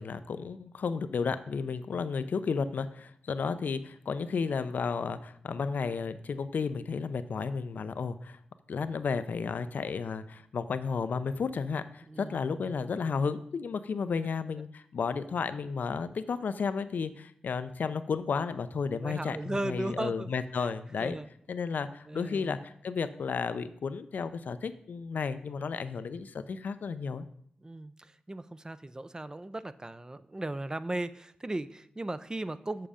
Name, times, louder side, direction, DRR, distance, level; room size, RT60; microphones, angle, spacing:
voice 1, 0.0-8.4 8.7-21.2 21.5-27.2, left 5 dB, 70° left, 12 dB, 0.6 m, -33 dB
voice 2, 12.1-12.8 19.0-20.7 21.0-21.3 22.1-22.6 27.6-32.9, right 2 dB, 25° right, 14 dB, 0.5 m, -37 dB
7.5 x 6.8 x 5.0 m, 0.66 s
cardioid pair, 50°, 3 cm